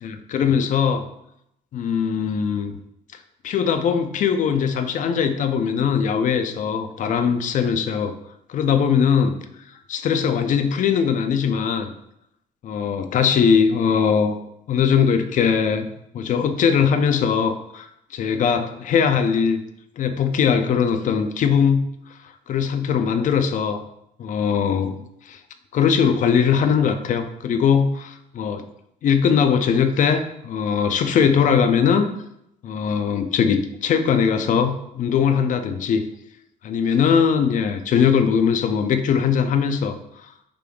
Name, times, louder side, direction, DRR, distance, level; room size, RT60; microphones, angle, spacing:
voice 1, 0.0-1.1 1.7-2.7 3.4-8.1 8.5-9.3 9.9-11.9 12.6-14.4 14.7-19.6 20.0-21.9 22.5-23.8 24.2-24.9 25.3-25.4 25.7-28.7 29.0-32.1 32.6-36.0 36.6-40.0 40.2-40.3, left 7 dB, 50° left, 8 dB, 0.4 m, -20 dB
5.0 x 3.3 x 2.3 m, 0.78 s
cardioid pair, 110°, 17 cm